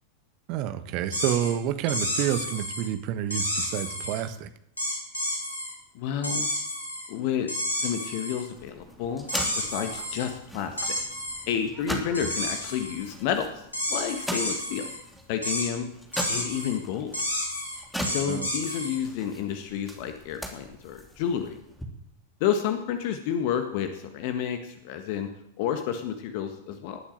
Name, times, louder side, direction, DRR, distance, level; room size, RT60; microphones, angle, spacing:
voice 1, 0.5-4.5 12.2-12.3 18.3-18.5, right 11 dB, 40° right, 11 dB, 1.4 m, -29 dB
sound 1, 1.1-1.5 1.9-2.8 3.3-4.2 4.8-5.7 6.2-7.1 7.5-8.4 9.3-10.3 10.8-11.4 12.1-13.0 13.7-15.0 15.4-15.7 16.1-16.8 17.1-19.0, left 1 dB, 80° left, 6.8 m, -31 dB
voice 2, 5.9-6.5 7.1-7.5 7.8-9.3 9.5-10.8 11.5-14.9 15.3-15.9 16.3-17.1 18.1-21.6 22.4-25.3 25.6-27.0, left 8 dB, 45° left, 7 dB, 1.6 m, -30 dB
sound 2, 8.6-21.8, equal, ahead, 3.0 m, -40 dB
19.5 x 8.8 x 7.6 m, 0.78 s
figure-of-eight pair, 90°, 0 cm